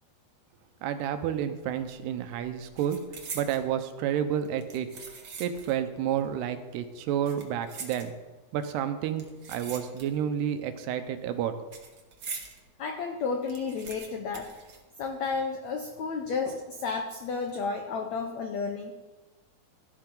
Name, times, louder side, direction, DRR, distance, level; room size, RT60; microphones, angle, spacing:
voice 1, 0.8-3.0 3.3-4.9 5.4-8.1 8.5-11.5, right 9 dB, 85° right, 9 dB, 3.0 m, -30 dB
sound 1, 1.8-2.0 2.3-3.7 4.4-5.8 6.1-6.2 7.1-8.5 9.2-10.4 10.6-12.6 13.0-13.1 13.3-15.4 15.7-15.8 16.5-16.9 17.3-17.5, right 5 dB, 55° right, 1.3 m, -43 dB
voice 2, 12.8-14.5 15.0-18.9, left 4 dB, 90° left, 4 dB, 1.5 m, -32 dB
16.5 x 12.5 x 3.9 m, 1.2 s
omnidirectional pair, 4.6 m